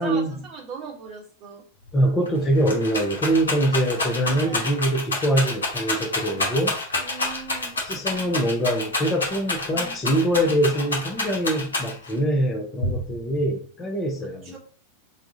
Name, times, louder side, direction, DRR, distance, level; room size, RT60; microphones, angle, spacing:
voice 1, 0.0-1.6 4.4-4.7 7.0-7.8 14.4-14.6, right 6 dB, 30° right, 1.1 m, -38 dB
Rattle, 1.9-2.0 2.3-12.2 12.8-13.4, left 2 dB, 75° left, 0.9 m, -28 dB
voice 2, 1.9-6.7 7.9-14.6, right 1 dB, 20° left, 0.7 m, -24 dB
2.5 x 2.3 x 3.9 m
figure-of-eight pair, 90°, 0 cm